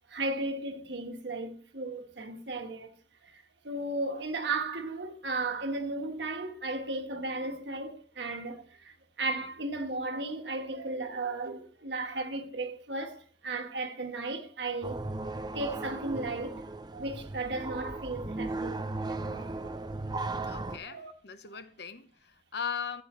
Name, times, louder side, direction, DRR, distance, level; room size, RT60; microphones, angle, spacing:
voice 1, 0.1-2.9 3.6-8.6 9.2-15.0 15.5-16.6 16.9-19.5 20.8-21.1, right 2 dB, 75° right, 1.4 m, -35 dB
sound 1, 14.8-20.8, right 2 dB, 25° right, 0.6 m, -36 dB
voice 2, 20.4-23.0, left 6 dB, 65° left, 0.9 m, -39 dB
14.0 x 8.4 x 3.1 m
head